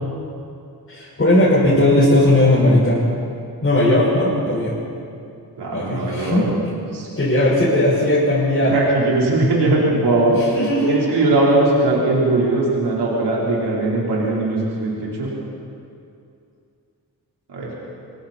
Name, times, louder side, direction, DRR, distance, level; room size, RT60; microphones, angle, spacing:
voice 1, 0.9-3.0 3.6-4.8 5.7-6.5 7.2-8.8 10.3-11.0, left 1 dB, 35° left, -8 dB, 5.6 m, -17 dB
voice 2, 5.6-6.4 6.9-7.1 8.7-10.4 10.9-15.3 17.5-17.7, right 2 dB, 85° right, -6 dB, 4.8 m, -19 dB
28.0 x 22.5 x 4.6 m, 2.5 s
wide cardioid pair, 135°, 39 cm